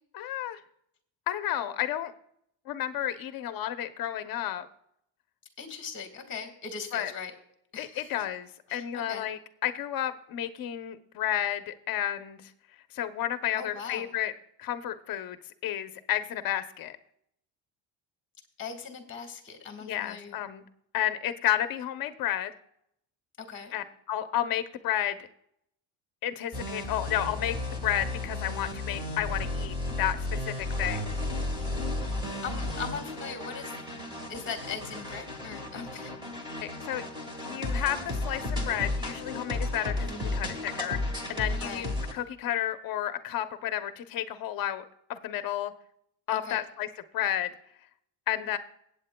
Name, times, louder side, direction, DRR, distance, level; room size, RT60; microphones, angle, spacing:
voice 1, 0.1-0.6 1.3-2.1 2.7-4.7 6.9-7.1 7.8-12.4 12.9-14.3 14.6-15.4 15.6-17.0 19.8-20.6 20.9-22.5 23.7-25.2 26.2-27.6 27.8-31.0 36.8-37.0 37.4-41.0 41.3-44.8 45.1-45.7 46.3-46.9 47.1-47.5 48.3-48.6, left 11 dB, 45° left, 10 dB, 0.7 m, -31 dB
voice 2, 5.6-7.3 7.7-8.2 8.7-9.3 13.5-14.1 18.6-20.4 23.4-23.8 32.4-33.7 34.3-36.1 37.4-37.6 41.6-41.8 46.3-46.6, left 6 dB, 25° left, 5 dB, 1.5 m, -39 dB
Rock Music, 26.5-42.1, left 2 dB, 10° right, 1.3 m, -34 dB
22.5 x 8.4 x 2.2 m, 0.74 s
cardioid pair, 175°, 47 cm